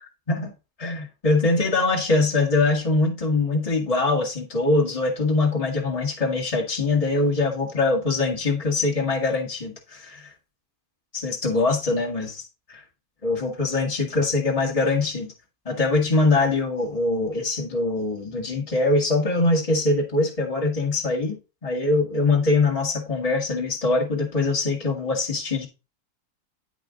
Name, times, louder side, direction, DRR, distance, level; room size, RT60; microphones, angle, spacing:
voice 1, 0.8-10.3 11.1-12.8 13.2-15.3 15.7-25.7, left 3 dB, 20° left, 2.0 m, -23 dB
10.5 x 5.2 x 3.8 m
omnidirectional pair, 1.6 m